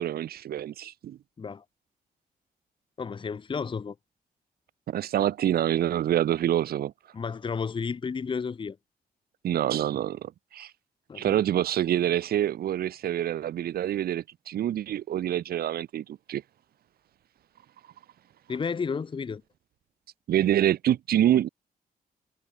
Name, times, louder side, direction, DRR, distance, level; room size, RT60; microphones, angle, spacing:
voice 1, 0.0-1.2 4.9-6.9 9.4-10.7 11.1-16.4 20.3-21.5, right 11 dB, 85° right, 1.0 m, -26 dB
voice 2, 3.0-3.9 7.1-8.8 11.1-11.4 18.5-19.4, left 5 dB, 35° left, 0.9 m, -32 dB
cardioid pair, 120°, 15 cm